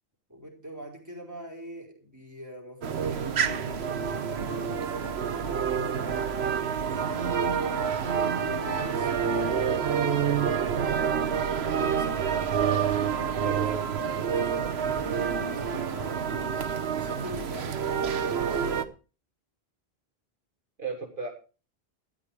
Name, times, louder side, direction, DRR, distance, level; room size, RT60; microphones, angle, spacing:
voice 1, 0.3-7.6 8.1-10.6 11.6-13.6 14.0-16.6 16.9-18.0, equal, 15° right, 0 dB, 4.5 m, -43 dB
sound 1, 2.8-18.9, right 7 dB, 85° right, 1.2 m, -28 dB
sound 2, 3.2-16.7, left 1 dB, 45° left, 2.6 m, -44 dB
voice 2, 13.4-14.0 20.8-21.3, right 4 dB, 55° right, 2 dB, 1.9 m, -36 dB
13.0 x 10.5 x 4.8 m, 0.34 s
omnidirectional pair, 1.1 m